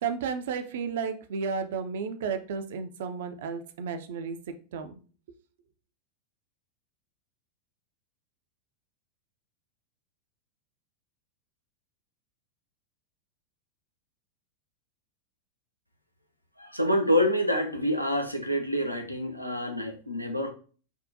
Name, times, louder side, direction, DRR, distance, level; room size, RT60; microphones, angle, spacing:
voice 1, 0.0-4.9, right 6 dB, 55° right, 8 dB, 0.3 m, -33 dB
voice 2, 16.6-20.5, equal, 90° left, 4 dB, 0.4 m, -27 dB
3.4 x 2.2 x 2.6 m, 0.39 s
figure-of-eight pair, 90°, 0 cm